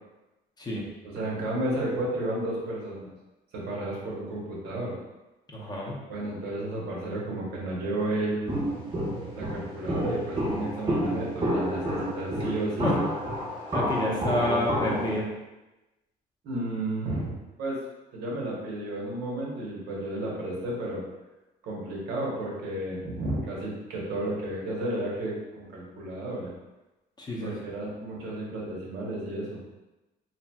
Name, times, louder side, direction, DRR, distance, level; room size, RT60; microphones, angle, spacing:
voice 1, 1.0-3.1 3.5-4.9 6.1-8.5 9.3-12.9 14.2-14.6 16.4-17.8 18.1-21.0 21.6-26.5 27.4-29.6, right 1 dB, 75° right, -4 dB, 0.9 m, -32 dB
voice 2, 5.5-6.0 12.8-13.0 13.7-15.3 27.2-27.5, left 1 dB, 25° left, -3 dB, 0.6 m, -29 dB
Walk footsteps, 8.5-15.2, equal, 30° right, 0.8 m, -30 dB
2.8 x 2.8 x 2.2 m, 1.1 s
cardioid pair, 110°, 17 cm